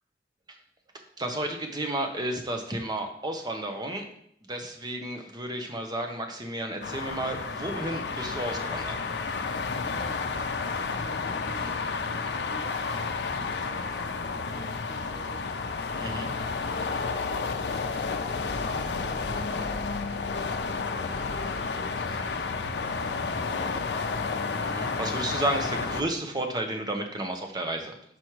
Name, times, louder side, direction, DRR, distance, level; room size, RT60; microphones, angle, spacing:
voice 1, 1.2-4.0 4.4-9.0 16.0-16.3 24.6-27.9, right 1 dB, 25° right, 4 dB, 0.9 m, -32 dB
sound 1, 6.8-26.0, left 4 dB, 75° left, 0.6 m, -31 dB
voice 2, 9.7-12.8 13.3-15.6 16.6-19.9 20.9-24.0, right 3 dB, 55° right, 1 dB, 1.3 m, -50 dB
5.9 x 5.2 x 4.6 m, 0.69 s
head